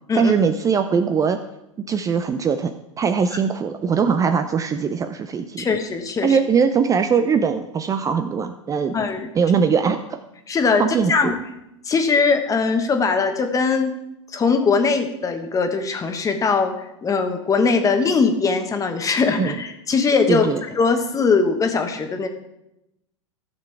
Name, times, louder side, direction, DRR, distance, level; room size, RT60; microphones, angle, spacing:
voice 1, 0.1-1.4 1.9-2.7 3.0-5.7 6.2-8.9 9.4-10.2 10.8-11.3 19.4-19.6 20.3-20.6, right 6 dB, 20° right, 9 dB, 0.5 m, -21 dB
voice 2, 5.6-6.4 8.9-9.3 10.5-10.8 11.1-11.3 11.8-13.9 14.3-16.7 17.0-22.3, left 4 dB, 20° left, 6 dB, 1.3 m, -20 dB
14.5 x 6.7 x 3.4 m, 0.87 s
hypercardioid pair, 95°, 16 cm